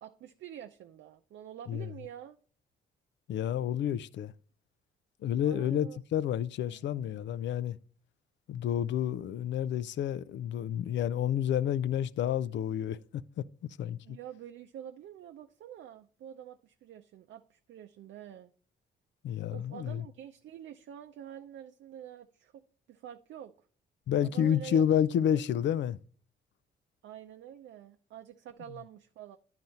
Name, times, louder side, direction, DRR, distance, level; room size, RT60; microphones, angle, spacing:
voice 1, 0.0-2.4 5.4-6.0 6.6-7.2 14.0-18.5 19.5-23.5 24.2-24.8 25.3-25.4 27.0-29.4, right 10 dB, 70° right, 0.6 m, -47 dB
voice 2, 3.3-4.3 5.2-7.8 8.5-13.0 13.4-13.5 13.8-14.0 19.2-20.0 24.1-26.0, left 10 dB, 65° left, 0.5 m, -29 dB
10.5 x 4.0 x 4.3 m
cardioid pair, 90°, 20 cm